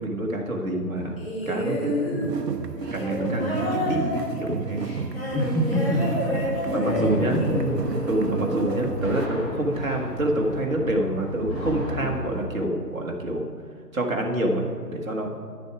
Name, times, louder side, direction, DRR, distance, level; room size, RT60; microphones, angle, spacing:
voice 1, 0.0-2.6 2.9-4.8 6.7-7.4 8.0-13.5 13.9-15.3, right 1 dB, 55° right, 1 dB, 1.5 m, -27 dB
sound 1, 1.2-9.6 10.6-10.7, left 1 dB, 35° left, 2.5 m, -30 dB
sound 2, 2.2-9.3, right 5 dB, 80° right, 0.8 m, -32 dB
voice 2, 5.3-6.2 6.5-7.9, equal, ahead, -5 dB, 0.4 m, -27 dB
sound 3, 5.9-12.4, equal, 15° left, 1.6 m, -34 dB
10.5 x 6.8 x 4.8 m, 2.3 s
figure-of-eight pair, 150°, 48 cm